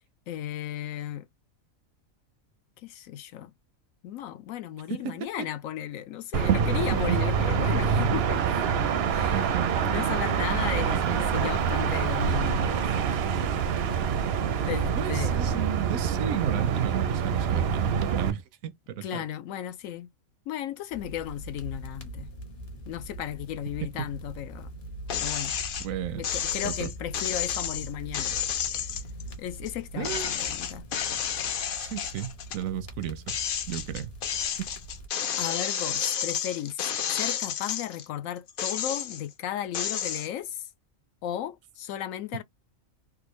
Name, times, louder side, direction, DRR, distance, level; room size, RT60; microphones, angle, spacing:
voice 1, 0.3-1.2 2.8-3.5 4.0-8.4 9.1-9.4 9.8-13.1 14.7-15.4 19.0-20.1 20.5-22.3 22.9-24.7 25.1-25.5 26.1-28.4 28.7-28.9 29.4-30.9 35.4-40.7 41.2-42.4, left 11 dB, 80° left, 1.0 m, -35 dB
sound 1, 6.3-18.3, right 7 dB, 65° right, 0.7 m, -26 dB
voice 2, 9.3-9.7 10.7-11.4 15.0-19.2 25.8-26.2 26.6-26.9 30.0-30.3 31.7-34.4, right 10 dB, 80° right, 1.0 m, -34 dB
sound 2, 20.9-35.1, right 1 dB, 40° left, 1.1 m, -42 dB
sound 3, 25.1-25.9 26.2-29.7 30.0-32.6 33.0-38.0 38.5-39.3 39.7-40.3, left 9 dB, 60° left, 0.6 m, -31 dB
3.6 x 2.4 x 3.1 m
omnidirectional pair, 1.4 m